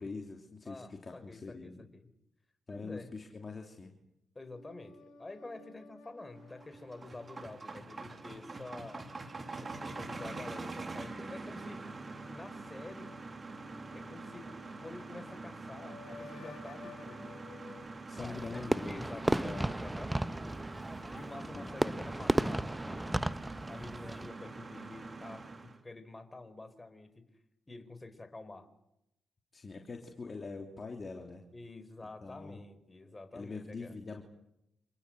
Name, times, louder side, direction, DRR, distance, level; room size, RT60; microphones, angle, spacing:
voice 1, 0.0-1.9 2.7-3.9 18.1-19.7 21.5-21.7 29.5-31.4 32.2-32.6 33.3-34.2, left 4 dB, 40° left, 2 dB, 3.2 m, -44 dB
voice 2, 0.6-2.1 2.7-3.1 4.3-9.1 9.6-13.2 13.9-14.5 14.8-17.3 18.2-20.4 21.1-23.2 23.7-27.3 27.7-28.7 31.5-34.0, left 2 dB, 25° left, 11 dB, 4.6 m, -48 dB
sound 1, 4.4-17.8, left 3 dB, 75° left, 5.6 m, -56 dB
sound 2, 6.4-25.8, right 3 dB, 35° right, 3.3 m, -45 dB
Fireworks, 18.2-24.3, right 1 dB, 15° right, 1.2 m, -34 dB
28.0 x 21.0 x 8.0 m, 0.83 s
hypercardioid pair, 40°, 0 cm